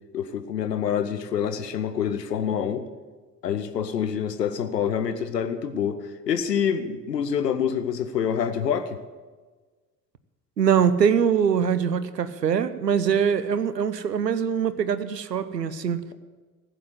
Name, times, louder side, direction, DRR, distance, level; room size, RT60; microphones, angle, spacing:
voice 1, 0.1-2.9 3.4-9.0, left 8 dB, 80° left, 10 dB, 0.8 m, -26 dB
voice 2, 10.6-16.0, right 7 dB, 85° right, 14 dB, 0.7 m, -23 dB
15.0 x 7.9 x 8.0 m, 1.4 s
figure-of-eight pair, 60°, 48 cm